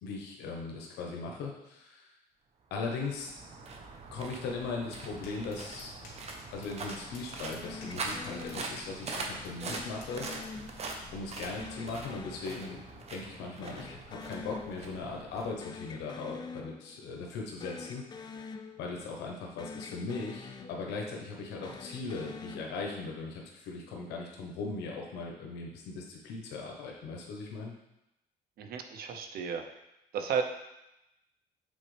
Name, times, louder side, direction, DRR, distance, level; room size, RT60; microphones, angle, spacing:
voice 1, 0.0-2.1 2.7-3.3 4.1-5.9 6.5-10.3 11.1-18.4 18.8-27.7, left 4 dB, 85° left, -1 dB, 1.0 m, -39 dB
sound 1, 2.7-16.1, right 3 dB, 40° right, 0.8 m, -43 dB
sound 2, 4.4-11.6, left 3 dB, 65° left, 2.0 m, -54 dB
sound 3, 7.6-9.1 9.6-11.2 11.6-13.4 13.6-15.2 15.4-17.1 17.5-19.3 19.6-21.2 21.6-23.3, left 4 dB, 25° left, 0.4 m, -46 dB
voice 2, 28.6-29.6 30.1-30.4, right 6 dB, 65° right, 6 dB, 0.7 m, -33 dB
7.5 x 3.9 x 3.3 m, 0.90 s
cardioid pair, 110°, 17 cm